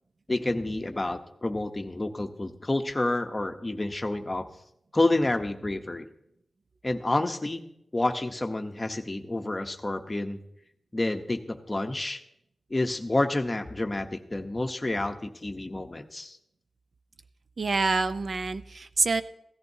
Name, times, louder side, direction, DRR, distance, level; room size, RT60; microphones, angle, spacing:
voice 1, 0.3-4.4 4.9-6.1 6.8-7.6 7.9-10.4 10.9-12.2 12.7-16.4, left 2 dB, 20° left, 5 dB, 0.8 m, -29 dB
voice 2, 17.6-19.2, right 3 dB, 55° right, 12 dB, 0.5 m, -26 dB
16.0 x 14.0 x 2.7 m, 0.77 s
wide cardioid pair, 130°, 0 cm